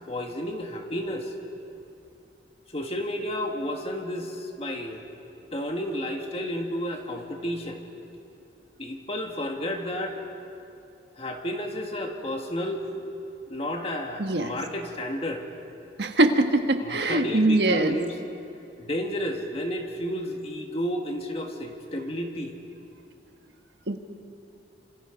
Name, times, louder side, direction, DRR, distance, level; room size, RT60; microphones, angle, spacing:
voice 1, 0.1-1.3 2.7-5.0 5.5-7.8 8.8-10.2 11.2-12.8 13.5-15.4 16.8-18.2 18.8-22.5, equal, 30° left, 2 dB, 1.8 m, -31 dB
voice 2, 14.2-14.5 16.0-18.0 23.9-24.0, right 2 dB, 70° right, 6 dB, 1.4 m, -22 dB
27.5 x 27.5 x 5.2 m, 2.7 s
head